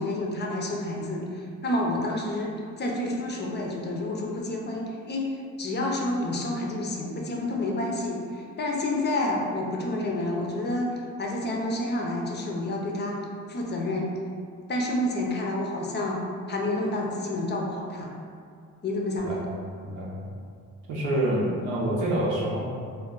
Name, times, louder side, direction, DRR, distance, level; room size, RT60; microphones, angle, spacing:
voice 1, 0.0-13.2 13.5-14.1 14.7-16.2 16.5-18.1 18.8-19.4, left 1 dB, 35° left, -1 dB, 0.5 m, -29 dB
voice 2, 19.8-20.2 20.9-22.6, right 1 dB, 90° right, -4 dB, 0.7 m, -26 dB
2.3 x 2.2 x 3.7 m, 2.3 s
cardioid pair, 90°, 30 cm